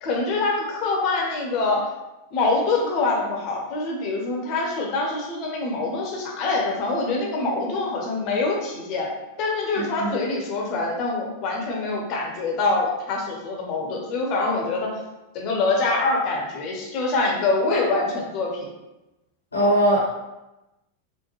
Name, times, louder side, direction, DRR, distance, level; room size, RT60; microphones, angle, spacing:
voice 1, 0.0-1.9 2.3-9.1 9.4-14.9 15.3-18.7, left 3 dB, 40° left, -1 dB, 0.8 m, -25 dB
voice 2, 9.7-10.1 19.5-20.1, equal, 75° left, -3 dB, 0.8 m, -21 dB
3.9 x 2.1 x 3.0 m, 0.98 s
figure-of-eight pair, 90°, 0 cm